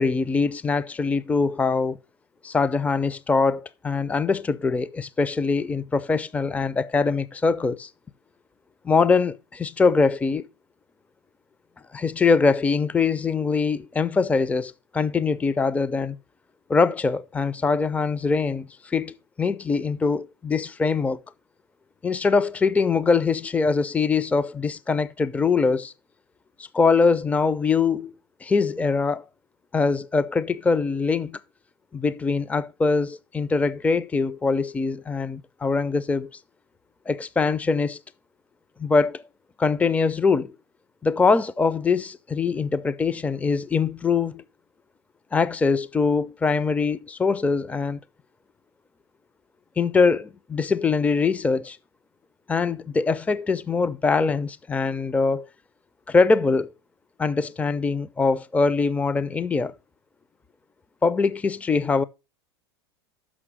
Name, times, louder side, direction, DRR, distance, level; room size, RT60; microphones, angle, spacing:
voice 1, 0.0-2.0 2.4-7.9 8.8-10.5 11.9-16.2 16.7-21.2 22.0-25.9 26.7-28.1 28.4-29.2 29.7-31.4 31.9-36.3 37.1-38.0 38.8-39.2 39.6-40.5 41.0-44.4 45.3-48.0 49.8-51.8 52.5-55.5 56.1-56.7 57.2-59.7 61.0-62.0, left 4 dB, 10° left, 0.4 m, -23 dB
6.2 x 6.1 x 5.9 m
hypercardioid pair, 100°, 14 cm